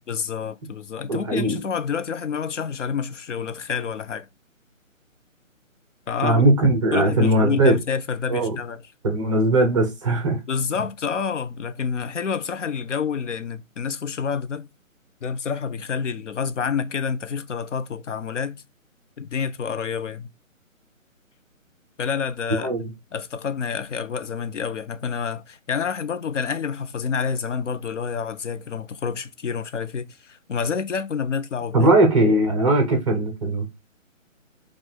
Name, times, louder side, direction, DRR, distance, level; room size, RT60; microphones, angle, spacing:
voice 1, 0.1-4.3 6.1-6.5 6.9-8.8 10.5-14.7 15.2-18.6 19.2-20.3 22.0-22.7 23.1-31.9 32.3-32.4, left 6 dB, 65° left, 0.6 m, -28 dB
voice 2, 1.1-1.6 6.2-7.8 8.3-8.6 9.0-10.4 22.6-22.9 31.7-33.7, right 2 dB, 25° right, 0.8 m, -19 dB
5.0 x 2.4 x 3.7 m
figure-of-eight pair, 150°, 41 cm